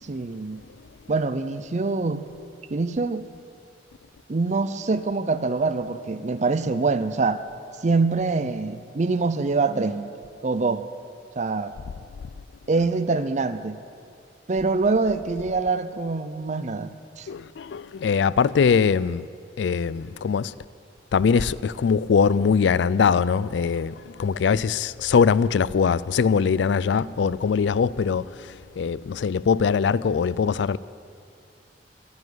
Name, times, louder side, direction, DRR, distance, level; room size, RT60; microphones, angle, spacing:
voice 1, 0.0-0.6 1.1-2.2 2.7-3.3 4.3-7.4 7.8-10.1 10.4-10.9 11.4-11.7 12.7-13.8 14.5-17.3, right 3 dB, 40° right, 0.5 m, -24 dB
voice 2, 17.3-19.3 19.6-20.5 21.1-30.8, left 6 dB, 75° left, 0.4 m, -22 dB
13.0 x 9.4 x 9.6 m
head